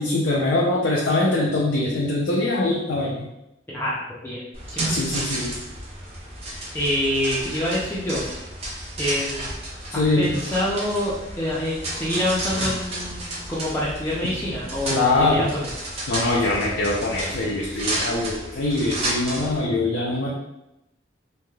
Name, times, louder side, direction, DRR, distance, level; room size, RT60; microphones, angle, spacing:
voice 1, 0.0-3.3 4.9-5.5 9.9-10.3 14.9-15.5 16.1-20.3, left 2 dB, 90° left, -4 dB, 0.5 m, -23 dB
sound 1, 4.5-19.6, right 1 dB, 30° right, 0.7 m, -32 dB
voice 2, 4.7-5.3 6.7-8.2 9.0-9.5 9.9-15.7, left 1 dB, 10° left, -8 dB, 0.5 m, -26 dB
3.2 x 2.6 x 2.3 m, 0.87 s
head